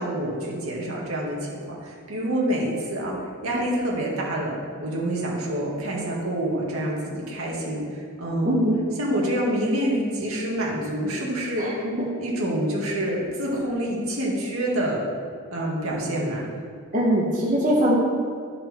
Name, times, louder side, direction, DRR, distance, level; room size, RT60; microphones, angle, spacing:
voice 1, 0.0-3.1 3.4-4.5 4.8-8.6 9.0-11.6 12.2-15.0 15.5-16.4, right 1 dB, 75° right, -4 dB, 2.2 m, -27 dB
voice 2, 8.4-8.8 11.6-12.1 16.9-18.0, equal, 35° right, -5 dB, 1.3 m, -22 dB
12.5 x 5.3 x 4.5 m, 2.2 s
head